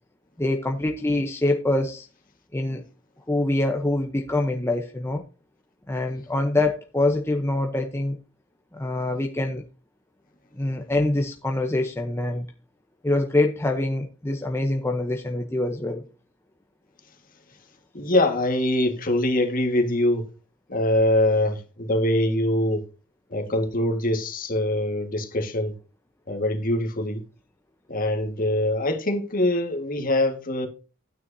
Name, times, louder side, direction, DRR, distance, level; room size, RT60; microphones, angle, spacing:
voice 1, 0.4-2.1 2.5-2.8 3.3-5.2 5.9-8.2 8.7-9.6 10.5-12.4 13.0-16.0, left 2 dB, 10° left, 0.9 m, -25 dB
voice 2, 17.9-20.3 20.7-22.9 23.3-25.7 26.3-27.2 27.9-30.7, left 1 dB, 40° left, 1.8 m, -23 dB
12.5 x 9.4 x 2.7 m
head